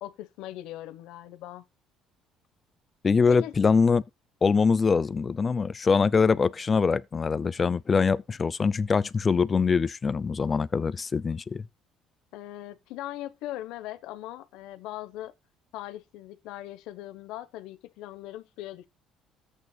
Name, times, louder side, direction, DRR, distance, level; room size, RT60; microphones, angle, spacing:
voice 1, 0.0-1.6 3.3-3.5 12.3-15.3 15.7-18.9, left 14 dB, 85° left, 1.0 m, -40 dB
voice 2, 3.0-4.0 4.4-11.7, left 5 dB, 25° left, 0.4 m, -23 dB
13.5 x 8.4 x 2.3 m
cardioid pair, 140°, 0 cm